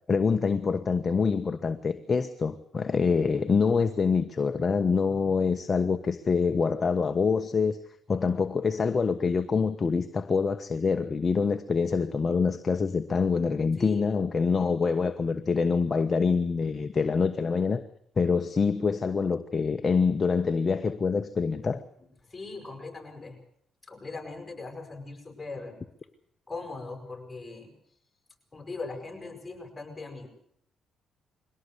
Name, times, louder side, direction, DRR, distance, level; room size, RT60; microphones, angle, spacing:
voice 1, 0.1-7.8 8.1-17.8 18.2-21.8, left 5 dB, 35° left, 1.2 m, -25 dB
voice 2, 22.3-23.4 23.9-25.8 26.5-27.7 28.5-30.3, left 3 dB, 20° left, 7.5 m, -40 dB
22.5 x 17.5 x 8.2 m
cardioid pair, 90°, 0 cm